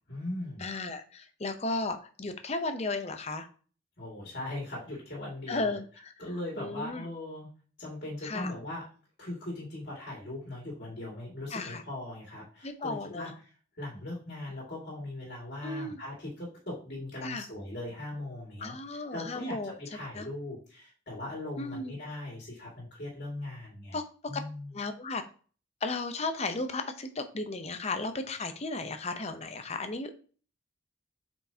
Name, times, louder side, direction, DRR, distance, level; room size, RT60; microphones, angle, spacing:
voice 1, 0.1-0.7 4.0-5.8 6.2-7.5 7.8-8.9 9.2-13.3 13.8-18.7 19.1-24.0 24.3-24.7, left 1 dB, 55° left, -3 dB, 2.2 m, -39 dB
voice 2, 0.6-3.5 5.5-6.1 6.6-7.1 8.2-8.5 11.5-11.8 12.6-13.3 15.6-16.0 17.2-17.4 18.6-19.7 20.1-20.3 21.6-21.9 23.9-24.0 24.7-25.2 25.8-30.2, left 3 dB, 35° left, 8 dB, 0.7 m, -34 dB
7.6 x 4.5 x 2.8 m, 0.40 s
head